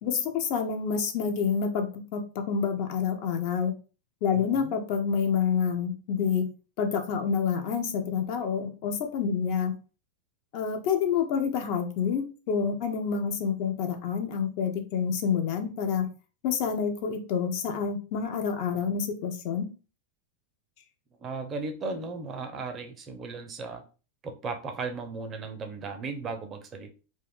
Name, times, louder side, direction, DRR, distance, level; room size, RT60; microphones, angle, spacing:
voice 1, 0.0-3.8 4.2-6.5 6.8-9.7 10.5-16.1 16.4-19.7, left 6 dB, 45° left, 5 dB, 0.5 m, -28 dB
voice 2, 4.3-4.8 21.2-23.8 24.2-26.9, right 4 dB, 25° right, 6 dB, 0.5 m, -36 dB
2.4 x 2.1 x 3.4 m, 0.35 s
figure-of-eight pair, 90°, 0 cm